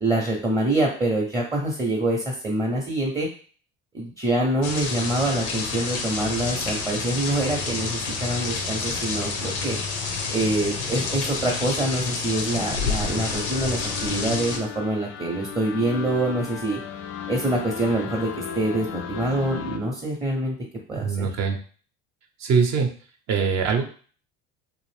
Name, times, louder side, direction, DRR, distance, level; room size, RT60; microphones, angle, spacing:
voice 1, 0.0-3.3 3.9-9.8 10.3-16.8 17.3-18.3 18.6-20.6 20.9-21.3, right 1 dB, 10° right, -2 dB, 0.6 m, -25 dB
sound 1, 4.6-14.6, left 4 dB, 90° left, 0.7 m, -29 dB
sound 2, 13.0-19.8, left 7 dB, 50° left, 0.4 m, -35 dB
voice 2, 21.0-21.6 22.4-22.9 23.3-23.9, right 5 dB, 50° right, 4 dB, 0.7 m, -22 dB
2.5 x 2.0 x 3.2 m, 0.42 s
supercardioid pair, 80°, 34 cm